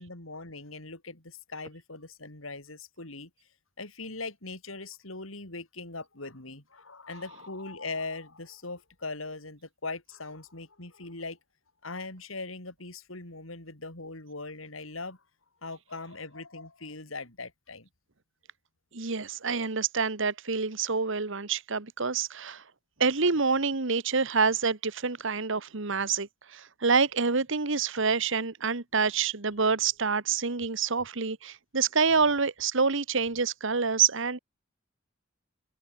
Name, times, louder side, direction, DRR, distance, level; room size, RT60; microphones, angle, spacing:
voice 1, 0.0-3.3 3.8-11.4 11.8-15.2 15.6-17.9, left 3 dB, 80° left, 4.9 m, -40 dB
voice 2, 18.9-22.6 23.0-34.4, right 5 dB, 70° right, 1.5 m, -27 dB
head